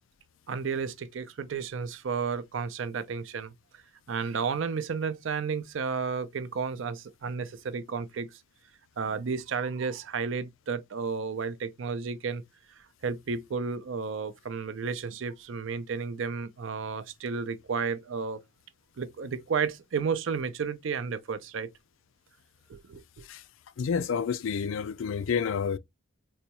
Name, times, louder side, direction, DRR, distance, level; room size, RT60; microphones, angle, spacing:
voice 1, 0.5-3.5 4.1-8.4 9.0-12.4 13.0-18.4 19.0-21.7 22.7-23.2, right 5 dB, 70° right, 0.5 m, -32 dB
voice 2, 23.8-25.8, left 6 dB, 70° left, 0.4 m, -29 dB
4.0 x 2.2 x 2.8 m
head